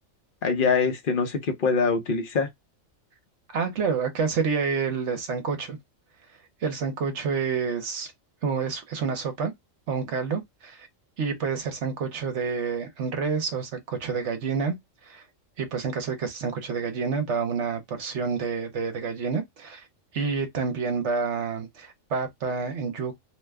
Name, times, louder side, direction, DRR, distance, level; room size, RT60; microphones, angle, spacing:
voice 1, 0.4-2.5, left 5 dB, 45° left, 0.9 m, -24 dB
voice 2, 3.5-5.8 6.6-8.1 8.4-9.5 9.9-10.9 11.2-14.8 15.0-15.2 15.6-19.9 20.1-23.2, right 5 dB, 65° right, 1.0 m, -28 dB
2.8 x 2.2 x 3.4 m
omnidirectional pair, 1.4 m